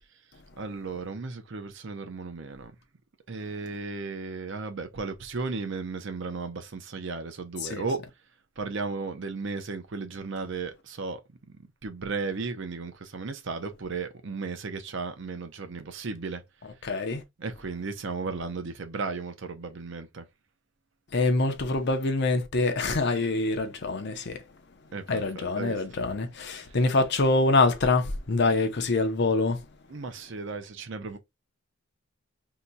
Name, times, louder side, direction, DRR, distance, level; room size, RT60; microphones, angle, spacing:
voice 1, 0.6-2.7 3.3-8.0 8.6-11.2 11.8-16.4 17.4-20.2 24.9-25.8 29.9-31.2, right 4 dB, 60° right, 0.6 m, -35 dB
voice 2, 16.8-17.2 21.1-24.4 25.1-29.6, left 3 dB, 55° left, 0.6 m, -25 dB
2.8 x 2.3 x 3.9 m
head